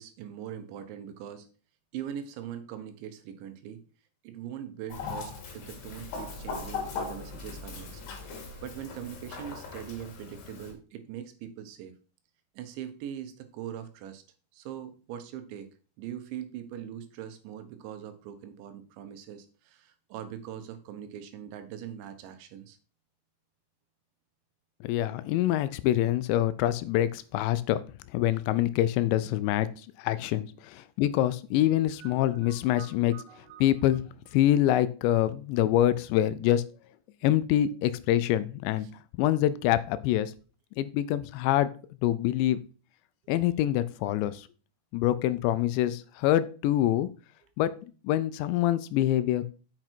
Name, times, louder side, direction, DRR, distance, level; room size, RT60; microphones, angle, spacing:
voice 1, 0.0-1.5 1.9-3.8 4.2-8.0 8.6-12.0 12.6-14.2 14.5-15.7 16.0-22.8 32.0-33.7, right 10 dB, 85° right, 9 dB, 3.3 m, -41 dB
Chicken rooster, 4.9-10.7, left 4 dB, 65° left, 4.1 m, -39 dB
voice 2, 24.8-27.8 28.1-29.7 30.0-33.1 33.6-34.0 34.3-36.6 37.2-38.9 39.2-40.3 40.8-41.7 42.0-42.6 43.3-44.5 44.9-47.1 47.6-47.7 48.0-49.4, left 13 dB, 85° left, 14 dB, 2.8 m, -25 dB
7.8 x 5.9 x 4.5 m, 0.37 s
omnidirectional pair, 5.2 m